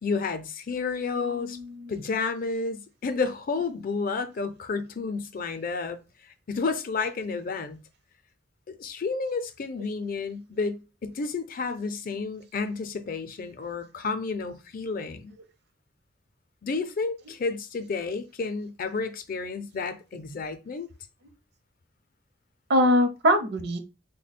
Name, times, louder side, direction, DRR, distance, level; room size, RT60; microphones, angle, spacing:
voice 1, 0.0-1.6 1.9-6.0 6.5-7.8 8.7-15.4 16.6-20.9, left 4 dB, 50° left, 0.5 m, -31 dB
voice 2, 1.2-1.9 22.7-23.8, equal, 60° right, 0.7 m, -23 dB
3.3 x 2.2 x 4.1 m
head